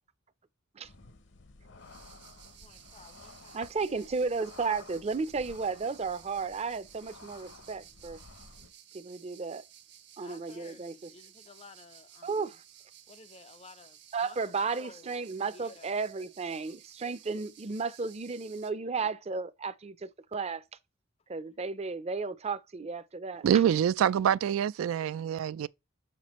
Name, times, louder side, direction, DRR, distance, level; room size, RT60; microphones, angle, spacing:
sound 1, 0.8-8.7, left 3 dB, 60° left, 0.7 m, -53 dB
sound 2, 1.8-18.7, right 10 dB, 55° right, 0.9 m, -55 dB
voice 1, 2.4-3.6 3.9-4.3 10.2-12.4 13.1-14.4 14.8-15.2 15.5-16.0 25.1-25.3 25.5-25.7, left 4 dB, 30° left, 0.4 m, -54 dB
voice 2, 3.5-8.2 8.9-9.6 10.2-11.1 12.2-12.6 14.1-20.6 21.3-23.6, right 4 dB, 30° right, 0.5 m, -34 dB
voice 3, 23.4-25.7, right 9 dB, 90° right, 0.3 m, -26 dB
6.5 x 5.8 x 3.0 m
head